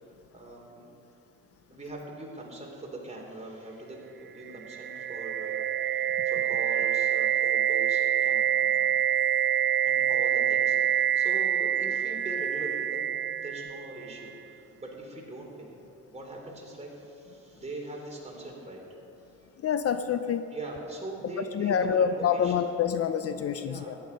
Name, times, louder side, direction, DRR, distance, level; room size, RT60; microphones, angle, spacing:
voice 1, 0.3-1.0 1.7-8.9 9.8-15.8 16.1-18.9 20.5-22.5 23.5-24.0, right 2 dB, 20° right, -1 dB, 3.4 m, -41 dB
sound 1, 4.5-14.3, right 9 dB, 40° right, 0.4 m, -26 dB
voice 2, 19.6-20.5 21.4-24.0, left 8 dB, 50° left, 10 dB, 0.6 m, -27 dB
14.0 x 10.5 x 5.3 m, 2.8 s
cardioid pair, 90°, 30 cm